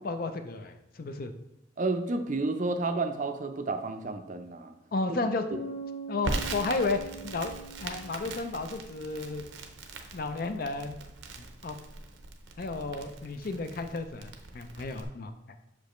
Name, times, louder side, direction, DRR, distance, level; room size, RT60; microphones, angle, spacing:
voice 1, 0.0-1.3 4.9-5.4 6.1-7.5 7.8-9.4 10.1-10.9 11.6-11.8 12.6-15.3, left 3 dB, 50° left, 8 dB, 0.5 m, -32 dB
voice 2, 1.8-4.7, right 3 dB, 40° right, 8 dB, 0.5 m, -31 dB
Bass guitar, 5.5-9.2, right 3 dB, 65° left, 1.5 m, -43 dB
Crackle, 6.2-15.0, right 2 dB, 80° right, 0.7 m, -40 dB
6.6 x 5.1 x 3.1 m, 0.88 s
head